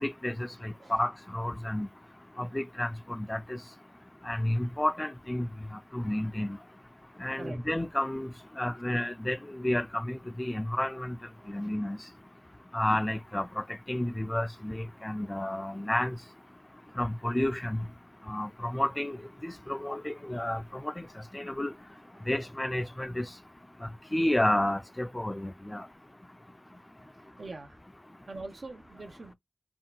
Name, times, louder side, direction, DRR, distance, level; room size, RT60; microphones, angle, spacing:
voice 1, 0.0-1.9 2.4-3.6 4.3-5.5 5.9-6.6 7.2-8.3 8.6-11.2 11.5-12.0 12.7-16.2 17.0-17.8 18.3-19.2 19.4-21.0 21.3-21.7 22.3-23.3 24.1-25.8, left 1 dB, 25° left, 0.3 m, -31 dB
voice 2, 11.4-11.7 22.1-22.3 27.2-27.8 28.3-29.3, right 2 dB, 90° right, 0.7 m, -44 dB
3.7 x 2.2 x 2.2 m
wide cardioid pair, 45°, 0 cm